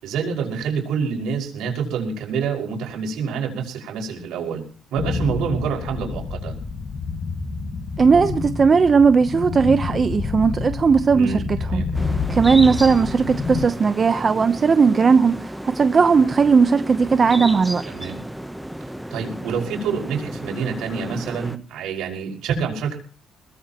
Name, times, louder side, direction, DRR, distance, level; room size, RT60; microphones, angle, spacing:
voice 1, 0.0-4.6 4.9-6.5 11.1-11.9 17.9-18.2 19.1-23.0, right 6 dB, 90° right, 5.6 m, -27 dB
sound 1, 5.0-13.7, left 4 dB, 55° left, 2.0 m, -28 dB
voice 2, 8.0-11.8 12.3-17.8, right 5 dB, 40° right, 0.9 m, -17 dB
sound 2, 11.9-21.6, equal, 5° right, 0.9 m, -33 dB
22.0 x 18.5 x 3.0 m
cardioid pair, 90°, 0 cm